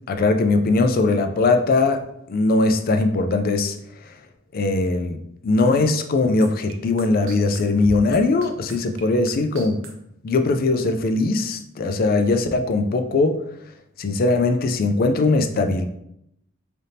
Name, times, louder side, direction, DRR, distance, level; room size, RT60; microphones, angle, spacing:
voice 1, 0.1-2.0 2.3-3.8 4.5-9.8 10.2-13.4 14.0-15.9, left 3 dB, 50° left, 7 dB, 0.4 m, -20 dB
sound 1, 6.4-9.9, right 2 dB, 85° right, 0.7 m, -36 dB
3.8 x 3.4 x 2.7 m, 0.76 s
head